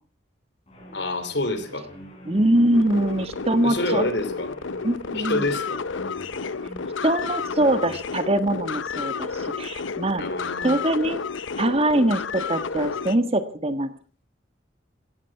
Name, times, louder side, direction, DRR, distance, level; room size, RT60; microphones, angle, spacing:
sound 1, 0.7-8.1, equal, 30° left, 6.4 m, -44 dB
voice 1, 0.9-1.9 3.6-4.6 5.1-5.8 10.2-10.8, left 2 dB, 65° left, 11 dB, 2.9 m, -27 dB
voice 2, 2.3-4.0 4.8-5.4 7.0-10.2 10.6-11.2 11.6-13.9, right 1 dB, 30° right, 11 dB, 1.5 m, -23 dB
sound 2, 2.7-13.2, left 5 dB, 90° left, 0.8 m, -31 dB
17.0 x 14.0 x 5.8 m, 0.41 s
head